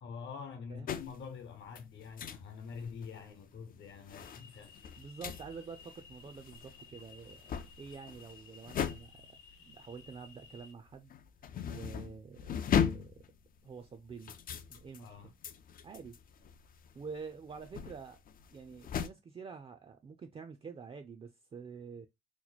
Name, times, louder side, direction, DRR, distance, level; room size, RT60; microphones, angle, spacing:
voice 1, 0.0-4.8 15.0-15.3, left 6 dB, 65° left, 1.0 m, -46 dB
sound 1, 0.9-1.3 1.7-2.5 2.7-3.2 3.7-10.6 10.9-19.1, left 8 dB, 45° left, 0.4 m, -38 dB
sound 2, 4.2-10.7, left 5 dB, 85° left, 0.7 m, -57 dB
voice 2, 5.0-11.1 11.6-13.1 13.6-14.3 14.7-15.3 15.8-16.2 16.9-18.2 18.5-22.1, right 5 dB, 30° right, 0.4 m, -48 dB
3.0 x 2.1 x 4.0 m
cardioid pair, 90°, 20 cm